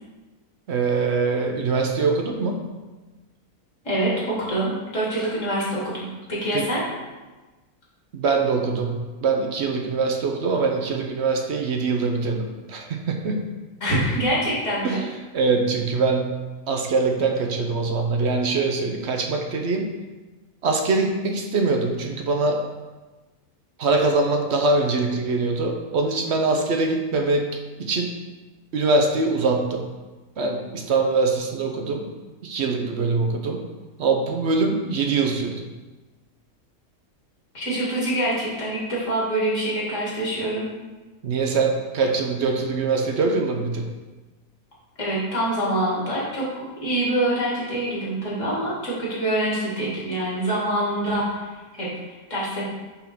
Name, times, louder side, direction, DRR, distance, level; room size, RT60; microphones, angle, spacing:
voice 1, 0.7-2.6 6.5-6.7 8.1-13.5 14.8-15.0 15.3-19.9 20.6-22.6 23.8-27.5 27.8-28.1 28.7-29.9 30.4-32.0 32.4-33.6 34.0-35.7 41.2-43.9, right 3 dB, 60° right, 3 dB, 0.8 m, -23 dB
voice 2, 3.8-6.8 13.8-15.0 37.5-40.7 45.0-46.5 46.8-52.6, right 1 dB, 55° left, -6 dB, 2.4 m, -25 dB
5.7 x 3.6 x 5.8 m, 1.2 s
omnidirectional pair, 1.6 m